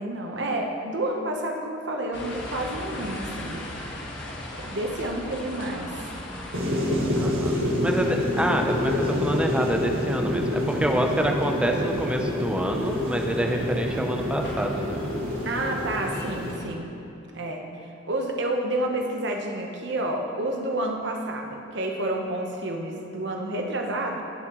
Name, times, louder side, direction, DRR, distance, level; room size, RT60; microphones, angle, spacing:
voice 1, 0.0-3.6 4.5-6.0 15.4-16.9 17.3-17.7 18.1-24.2, right 1 dB, 55° right, 2 dB, 1.1 m, -29 dB
sound 1, 2.1-16.7, left 1 dB, 60° left, 1.6 m, -39 dB
sound 2, 6.5-16.5, left 1 dB, 85° right, 1.6 m, -27 dB
voice 2, 7.1-15.0, right 1 dB, 5° right, 2 dB, 0.7 m, -27 dB
19.0 x 7.2 x 3.1 m, 2.6 s
head